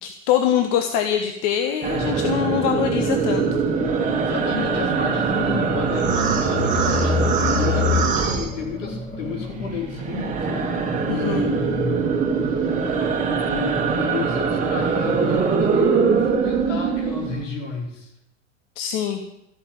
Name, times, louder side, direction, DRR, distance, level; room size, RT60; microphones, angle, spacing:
voice 1, 0.0-3.4 11.1-11.4 18.8-19.2, left 10 dB, 40° left, 6 dB, 1.4 m, -23 dB
sound 1, 1.8-9.2 9.4-17.4, right 5 dB, 20° right, 2.6 m, -22 dB
sound 2, 2.0-12.5, left 4 dB, 15° left, 3.0 m, -30 dB
voice 2, 4.2-10.7 11.0-12.1 12.5-12.8 13.4-18.1, left 5 dB, 65° left, 0 dB, 4.7 m, -31 dB
13.5 x 8.6 x 9.2 m, 0.80 s
figure-of-eight pair, 90°, 40 cm